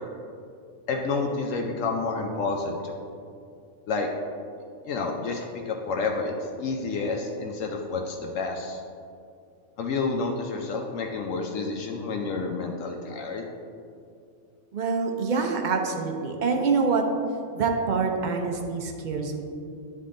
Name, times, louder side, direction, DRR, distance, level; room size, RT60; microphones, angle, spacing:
voice 1, 0.9-3.0 3.9-4.1 4.8-6.3 6.6-8.8 9.8-13.4, left 4 dB, 75° left, 1 dB, 1.0 m, -29 dB
voice 2, 14.7-17.0 17.5-19.4, right 4 dB, 50° right, 3 dB, 0.6 m, -26 dB
11.0 x 3.7 x 3.7 m, 2.4 s
omnidirectional pair, 1.4 m